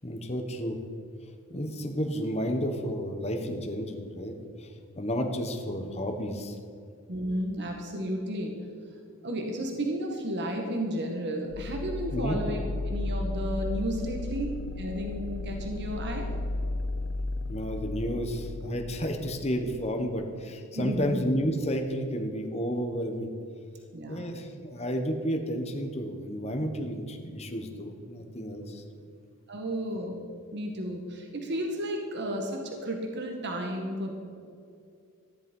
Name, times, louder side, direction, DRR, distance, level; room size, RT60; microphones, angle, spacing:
voice 1, 0.0-0.8 1.5-4.7 4.9-6.6 12.1-12.4 17.5-23.3 24.1-28.8, equal, 30° left, 3 dB, 1.3 m, -31 dB
voice 2, 7.1-8.6 9.2-14.5 14.8-16.3 20.7-21.2 23.9-24.2 29.5-30.3 30.5-34.1, equal, 50° right, 2 dB, 1.8 m, -33 dB
sound 1, 11.5-20.2, left 2 dB, 70° left, 0.6 m, -34 dB
14.5 x 11.0 x 5.5 m, 2.4 s
head